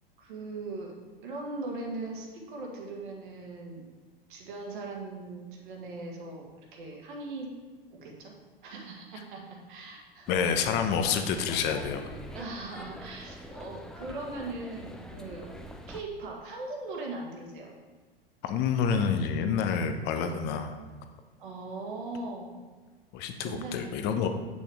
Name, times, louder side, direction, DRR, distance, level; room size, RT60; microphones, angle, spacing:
voice 1, 0.2-0.9 1.2-3.9 4.3-7.5 7.9-8.4 8.6-10.3 12.3-15.6 15.9-17.7 21.4-22.6 23.4-23.8, right 2 dB, 55° right, 0 dB, 1.9 m, -39 dB
voice 2, 10.3-12.1 18.4-20.7 23.1-24.3, left 6 dB, 35° left, 6 dB, 0.8 m, -28 dB
sound 1, 10.3-16.0, equal, ahead, 0.4 m, -44 dB
8.3 x 6.2 x 3.5 m, 1.4 s
figure-of-eight pair, 90°, 30 cm